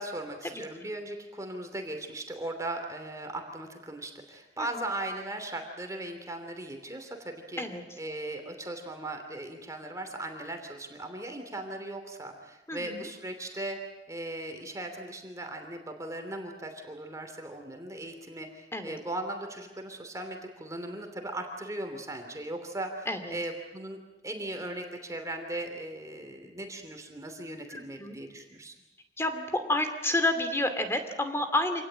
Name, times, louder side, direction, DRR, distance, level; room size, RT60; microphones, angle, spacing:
voice 1, 0.0-7.6 8.0-13.8 14.1-28.7, right 1 dB, 20° right, 4 dB, 3.0 m, -38 dB
voice 2, 12.7-13.0 18.7-19.0 23.1-23.4 27.7-28.2 29.2-31.8, left 1 dB, 15° left, 8 dB, 2.6 m, -30 dB
27.0 x 18.5 x 8.9 m, 1.0 s
head